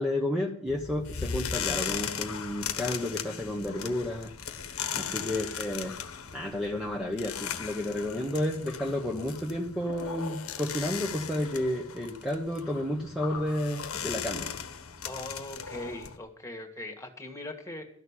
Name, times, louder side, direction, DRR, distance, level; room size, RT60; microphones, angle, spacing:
voice 1, 0.0-4.3 4.9-5.9 6.3-14.5, left 1 dB, ahead, 0 dB, 1.0 m, -31 dB
sound 1, 0.7-16.2, left 7 dB, 80° left, 1.2 m, -37 dB
voice 2, 15.0-17.9, left 1 dB, 15° left, 5 dB, 1.8 m, -40 dB
12.5 x 6.6 x 9.8 m, 0.66 s
head